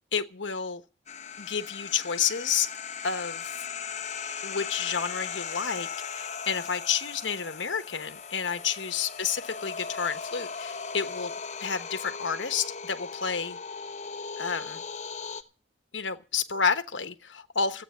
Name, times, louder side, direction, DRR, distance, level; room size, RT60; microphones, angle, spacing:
voice 1, 0.1-0.8 1.4-2.7 3.0-3.7 4.4-11.3 11.6-13.6 14.4-14.8 15.9-17.8, left 6 dB, 80° left, 1.2 m, -30 dB
sound 1, 1.1-15.4, left 6 dB, 40° left, 1.1 m, -38 dB
15.0 x 8.5 x 8.6 m
head